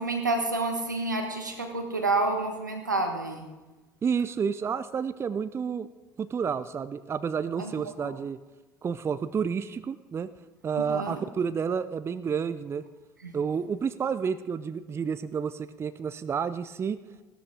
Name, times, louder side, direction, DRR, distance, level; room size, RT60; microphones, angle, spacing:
voice 1, 0.0-3.5 7.6-7.7 8.0-8.1 10.9-11.2 13.2-13.3, right 2 dB, 90° right, 4 dB, 1.3 m, -29 dB
voice 2, 4.0-5.9 6.2-8.4 8.8-10.3 10.6-12.8 13.3-17.0, right 6 dB, 25° right, 13 dB, 0.5 m, -30 dB
15.5 x 13.0 x 3.7 m, 1.1 s
figure-of-eight pair, 65°, 10 cm